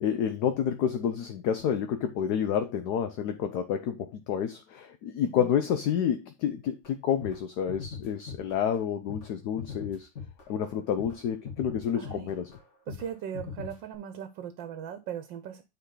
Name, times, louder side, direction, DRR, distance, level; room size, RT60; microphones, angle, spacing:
voice 1, 0.0-10.1 10.5-12.5, left 8 dB, 65° left, 1.2 m, -29 dB
sound 1, 6.8-6.9 7.2-7.4 7.7-8.8 9.1-9.3 9.6-10.7 11.0-11.2 11.4-12.6 12.9-13.1 13.3-14.0, left 6 dB, 40° left, 1.9 m, -41 dB
voice 2, 11.9-12.3 12.9-15.6, right 9 dB, 85° right, 1.5 m, -39 dB
9.3 x 4.1 x 3.8 m
omnidirectional pair, 2.0 m